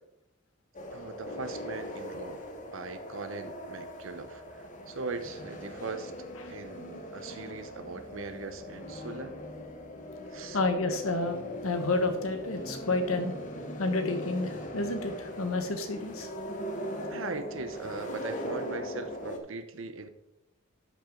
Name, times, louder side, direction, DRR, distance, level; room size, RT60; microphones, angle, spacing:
sound 1, 0.7-19.4, equal, 35° left, 1.1 m, -40 dB
voice 1, 0.9-2.4 2.7-6.1 6.5-9.4 10.3-10.6 17.1-20.1, right 4 dB, 65° right, 10 dB, 0.8 m, -40 dB
voice 2, 10.5-13.3 13.8-16.3, left 2 dB, 75° left, 6 dB, 1.4 m, -30 dB
12.0 x 6.0 x 3.8 m, 0.88 s
head